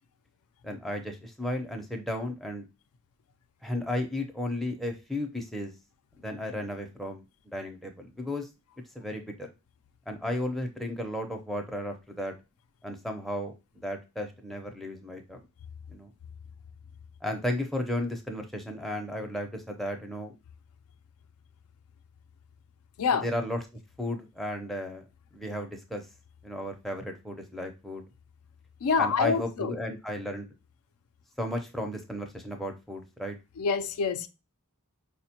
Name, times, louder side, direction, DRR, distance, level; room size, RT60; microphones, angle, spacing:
voice 1, 0.6-2.7 3.6-5.7 6.2-8.5 8.9-9.5 10.1-12.3 12.8-15.4 15.9-16.1 17.2-20.3 23.1-23.6 24.0-25.1 25.3-26.1 26.4-28.1 29.0-30.5 31.4-33.4, left 1 dB, ahead, 0.5 m, -34 dB
voice 2, 28.8-29.9 33.6-34.3, left 5 dB, 75° left, 0.4 m, -26 dB
4.8 x 2.1 x 2.8 m
head